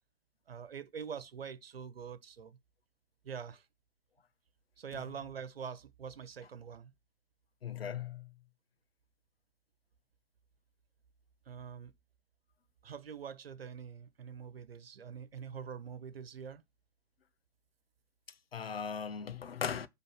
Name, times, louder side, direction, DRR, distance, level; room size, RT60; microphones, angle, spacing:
voice 1, 0.5-2.6 3.2-3.6 4.8-6.9 11.5-11.9 12.8-16.6, right 7 dB, 65° right, 1.3 m, -44 dB
voice 2, 7.6-8.3 18.5-19.9, left 7 dB, 65° left, 1.3 m, -38 dB
10.0 x 4.1 x 6.2 m
figure-of-eight pair, 130°, 31 cm